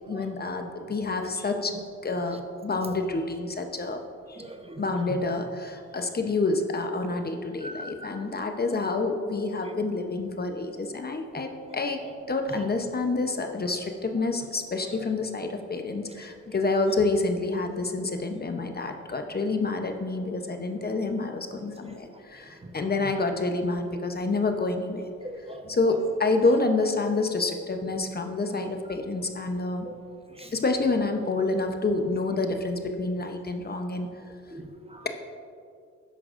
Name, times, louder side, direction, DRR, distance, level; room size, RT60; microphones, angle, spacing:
voice 1, 0.1-1.7 2.0-4.0 4.3-4.4 4.8-12.0 12.3-25.1 25.7-29.9 30.5-34.1, left 3 dB, 30° left, 5 dB, 0.8 m, -28 dB
voice 2, 4.4-4.8 7.6-8.1 25.2-25.6 29.8-29.9 30.4-30.5 34.5-35.0, equal, 20° right, 5 dB, 0.9 m, -41 dB
12.0 x 9.9 x 2.6 m, 2.3 s
cardioid pair, 70°, 30 cm